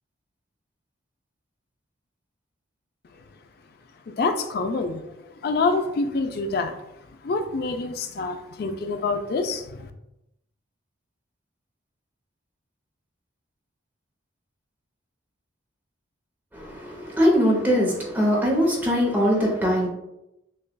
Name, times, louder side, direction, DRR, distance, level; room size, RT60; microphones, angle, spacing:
voice 1, 4.1-5.0 5.4-6.8 7.2-9.9, left 3 dB, 50° left, 7 dB, 0.4 m, -26 dB
voice 2, 16.5-19.9, equal, 10° right, -3 dB, 0.8 m, -21 dB
6.5 x 2.3 x 2.2 m, 0.89 s
head